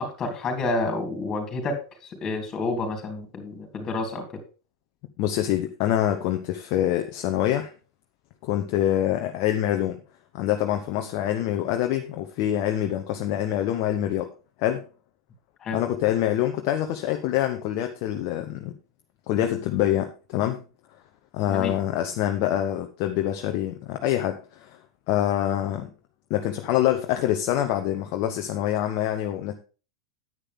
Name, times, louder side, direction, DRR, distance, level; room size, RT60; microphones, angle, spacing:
voice 1, 0.0-4.3 15.6-15.8 21.5-21.7, left 2 dB, 25° left, 3.4 m, -29 dB
voice 2, 5.2-7.7 8.4-10.0 10.3-14.3 14.6-14.8 15.7-18.7 19.3-20.6 21.3-24.8 25.1-25.9 26.3-29.5, left 12 dB, 45° left, 0.9 m, -25 dB
10.0 x 9.1 x 3.6 m
figure-of-eight pair, 90°, 2 cm